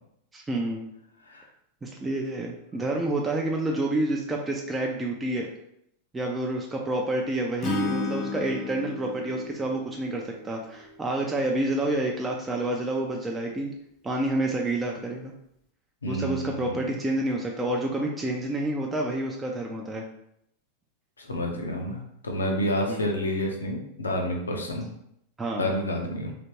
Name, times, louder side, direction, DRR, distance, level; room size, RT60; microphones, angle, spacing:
voice 1, 0.3-0.9 1.8-5.5 6.1-13.7 14.0-15.3 16.1-20.0 22.9-23.1 25.4-25.6, right 1 dB, 15° right, 0 dB, 0.4 m, -28 dB
Acoustic guitar / Strum, 7.6-10.9, left 4 dB, 35° left, 0.6 m, -33 dB
voice 2, 16.0-16.7 21.2-24.9 25.6-26.3, left 1 dB, 75° left, 2 dB, 0.6 m, -29 dB
3.3 x 2.9 x 2.8 m, 0.74 s
figure-of-eight pair, 90°, 0 cm